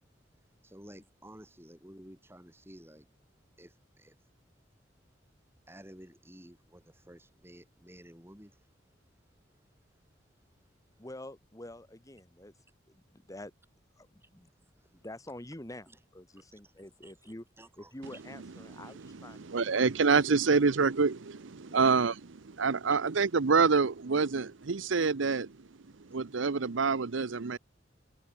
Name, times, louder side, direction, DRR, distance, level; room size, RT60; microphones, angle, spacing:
voice 1, 0.6-3.1 3.6-4.3 5.7-9.8 10.2-10.7 10.9-11.0 14.2-14.3 14.5-15.0 15.9-16.0 16.3-18.2 19.0-19.4 22.9-23.0, right 1 dB, 15° right, 7.6 m, -54 dB
voice 2, 11.0-12.5 12.9-13.5 14.0-14.5 14.9-15.9 16.1-17.4 17.8-19.7 21.7-22.0, left 1 dB, 15° left, 1.7 m, -47 dB
voice 3, 19.0-25.5 26.1-27.6, right 4 dB, 80° right, 0.8 m, -27 dB
head